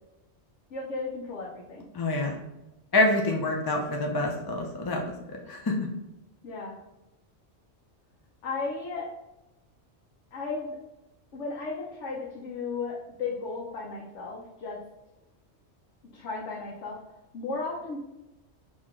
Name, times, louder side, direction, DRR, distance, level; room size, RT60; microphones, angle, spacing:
voice 1, 0.7-1.9 6.4-6.8 8.4-9.1 10.3-10.8 11.3-14.8 16.1-17.0 17.3-18.0, left 4 dB, 85° left, -3 dB, 1.1 m, -35 dB
voice 2, 1.9-2.4 2.9-5.8, left 2 dB, 35° left, 1 dB, 0.4 m, -27 dB
4.5 x 2.9 x 3.6 m, 0.96 s
omnidirectional pair, 1.2 m